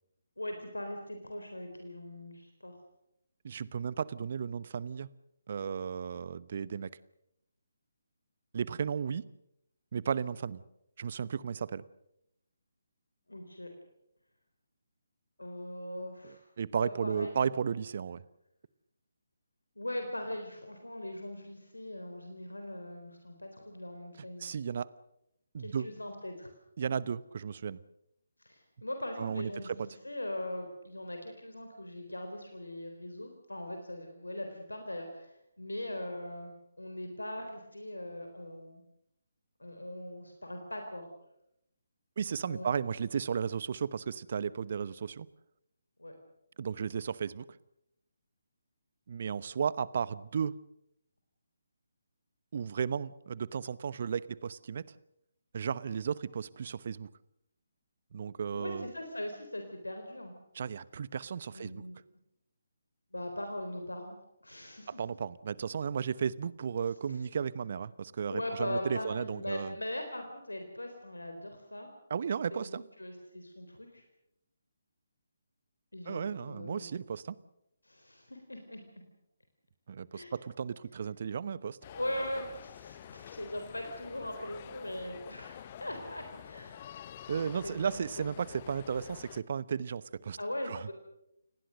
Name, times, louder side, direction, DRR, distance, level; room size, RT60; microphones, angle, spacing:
voice 1, 0.4-2.8 13.3-13.7 15.4-16.5 16.8-17.5 19.8-24.5 25.6-26.5 28.4-38.8 39.6-41.1 42.4-42.7 46.0-46.1 58.5-60.3 61.5-62.0 63.1-64.2 64.4-65.0 68.2-71.9 72.5-74.0 75.9-77.0 77.8-78.8 80.1-80.3 81.9-87.0 87.4-87.9 88.2-88.3 90.4-90.9, left 1 dB, 85° left, 5 dB, 3.9 m, -40 dB
voice 2, 3.4-5.1 5.5-6.9 8.5-9.2 9.9-10.6 11.0-11.8 16.6-18.2 24.4-24.9 25.5-25.9 26.8-27.8 29.2-29.5 42.2-45.3 46.6-47.6 49.1-50.5 52.5-54.8 55.5-57.1 58.1-58.9 60.5-61.8 64.9-69.7 72.1-72.8 76.1-77.4 79.9-81.8 87.3-90.4 90.7-90.9, right 7 dB, 45° right, 19 dB, 0.9 m, -34 dB
sound 1, 81.8-89.4, left 10 dB, 30° left, 1.0 m, -48 dB
29.0 x 19.0 x 6.6 m, 0.82 s
figure-of-eight pair, 145°, 0 cm